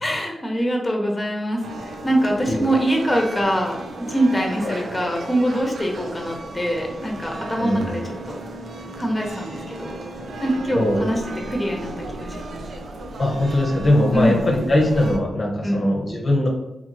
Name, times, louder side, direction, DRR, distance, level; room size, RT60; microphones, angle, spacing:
voice 1, 0.0-8.4 9.0-9.9 10.4-11.2 11.5-12.6 14.1-14.4 15.6-15.8, equal, 20° left, 0 dB, 0.8 m, -24 dB
sound 1, 1.6-15.2, right 2 dB, 75° right, 0.4 m, -35 dB
voice 2, 7.6-8.0 10.7-11.1 13.2-16.5, left 1 dB, 50° left, -2 dB, 0.7 m, -20 dB
2.7 x 2.7 x 2.7 m, 0.93 s
supercardioid pair, 45°, 0 cm